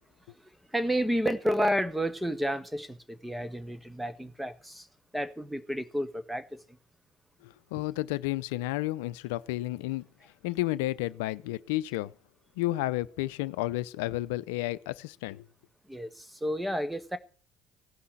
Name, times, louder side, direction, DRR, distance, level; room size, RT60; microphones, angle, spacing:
voice 1, 0.7-4.9 5.1-6.6 15.9-17.2, equal, 5° right, 1.6 m, -31 dB
voice 2, 7.4-10.1 10.4-12.1 12.6-15.5, left 17 dB, 80° left, 0.6 m, -31 dB
16.5 x 5.7 x 9.9 m
hypercardioid pair, 65°, 0 cm